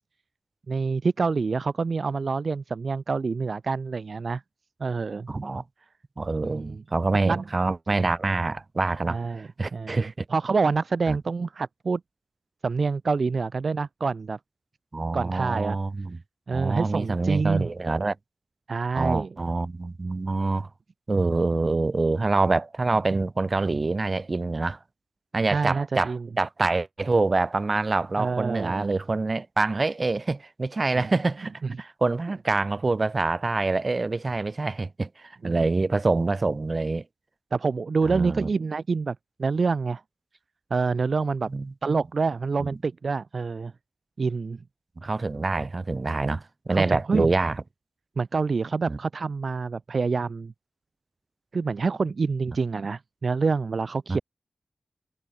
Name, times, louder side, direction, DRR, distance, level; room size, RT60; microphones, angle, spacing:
voice 1, 0.7-4.4 4.8-5.3 6.4-6.8 7.2-7.4 9.1-12.0 12.6-14.4 15.1-15.8 16.5-17.7 18.7-19.3 25.5-26.3 28.2-29.0 31.0-31.1 31.6-31.7 35.4-35.5 37.5-40.0 40.7-41.5 41.8-43.7 44.2-44.6 46.7-47.3 48.2-50.5 51.5-54.2, right 4 dB, 60° right, 0.6 m, -27 dB
voice 2, 5.3-5.6 6.2-10.2 11.1-11.2 14.9-16.2 16.5-18.1 18.9-20.7 21.1-24.8 25.3-31.5 31.8-37.0 38.0-38.5 41.5-41.7 42.6-42.8 45.0-47.6 48.9-49.0 54.1-54.2, right 3 dB, 40° right, 1.5 m, -26 dB
wide cardioid pair, 100°, 0 cm